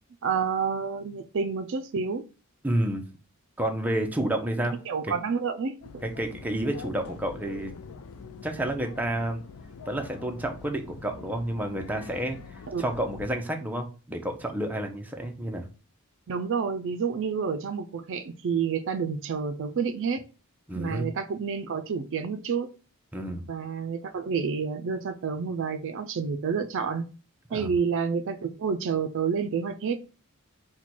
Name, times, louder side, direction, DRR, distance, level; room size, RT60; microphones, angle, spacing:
voice 1, 0.2-2.2 4.9-5.8 12.7-12.8 16.3-20.2 20.8-22.7 23.5-27.1 27.5-30.0, right 6 dB, 60° right, 0.4 m, -29 dB
voice 2, 2.6-3.0 3.6-4.8 5.0-5.1 6.0-7.7 8.4-9.4 9.9-12.4 12.8-15.7 20.7-21.1 23.1-23.4 27.5-27.7, right 1 dB, 10° right, 0.6 m, -30 dB
sound 1, 5.8-13.3, left 5 dB, 80° left, 0.4 m, -44 dB
4.4 x 2.2 x 4.2 m
head